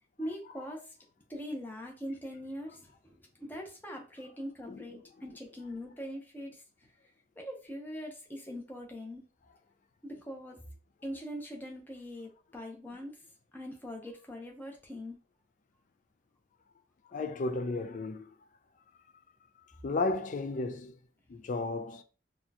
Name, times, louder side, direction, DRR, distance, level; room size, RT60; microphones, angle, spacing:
voice 1, 0.2-0.8 1.3-6.6 7.4-9.3 10.0-10.6 11.0-13.1 13.5-15.2, equal, 10° left, 0.7 m, -42 dB
voice 2, 17.1-18.3 19.8-20.9 21.3-22.0, left 3 dB, 45° left, 0.4 m, -33 dB
4.2 x 2.2 x 2.8 m
head